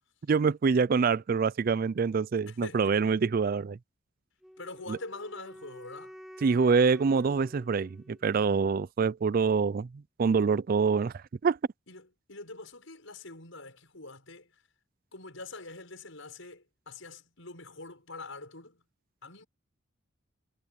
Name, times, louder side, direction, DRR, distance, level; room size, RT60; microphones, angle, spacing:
voice 1, 0.3-3.8 4.9-5.0 6.4-9.9 10.2-11.6, right 5 dB, 45° right, 0.4 m, -25 dB
voice 2, 2.5-3.0 4.6-6.1 11.9-14.5 15.1-18.8 19.2-19.5, left 3 dB, 70° left, 6.9 m, -44 dB
Wind instrument woodwind instrument, 4.4-8.5, equal, ahead, 6.0 m, -49 dB
head